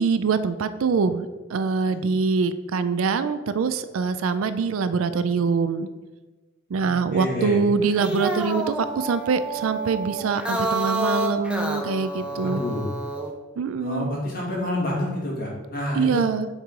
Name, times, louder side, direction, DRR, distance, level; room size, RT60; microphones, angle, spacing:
voice 1, 0.0-5.9 6.7-12.6 13.6-14.2 16.0-16.5, right 5 dB, 70° right, 12 dB, 0.4 m, -24 dB
voice 2, 6.7-7.6 12.1-12.8 13.8-16.3, left 1 dB, 45° left, -4 dB, 2.1 m, -29 dB
sound 1, 7.8-13.3, right 2 dB, 5° right, 0.6 m, -29 dB
6.5 x 3.7 x 4.7 m, 1.2 s
head